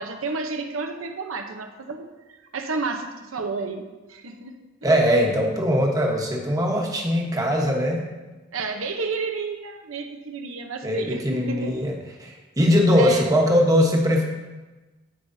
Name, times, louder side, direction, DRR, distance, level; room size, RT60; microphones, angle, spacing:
voice 1, 0.0-4.5 8.5-11.7 13.0-13.3, right 4 dB, 85° right, 5 dB, 0.8 m, -31 dB
voice 2, 4.8-8.0 10.8-11.9 12.2-14.2, equal, 20° right, 0 dB, 1.1 m, -21 dB
14.0 x 4.8 x 2.7 m, 1.2 s
head